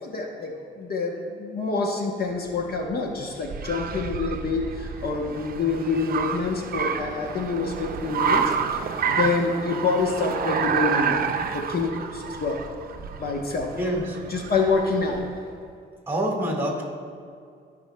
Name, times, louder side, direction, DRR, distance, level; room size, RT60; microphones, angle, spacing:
voice 1, 0.0-11.2 11.5-12.6 13.2-13.7 14.3-15.2, left 4 dB, 50° left, 1 dB, 1.0 m, -27 dB
Car, 2.5-15.4, right 6 dB, 50° right, 0.6 m, -29 dB
voice 2, 13.7-14.2 16.1-16.8, right 1 dB, 10° right, 0 dB, 1.7 m, -26 dB
14.5 x 5.3 x 2.3 m, 2.3 s
cardioid pair, 90°, 20 cm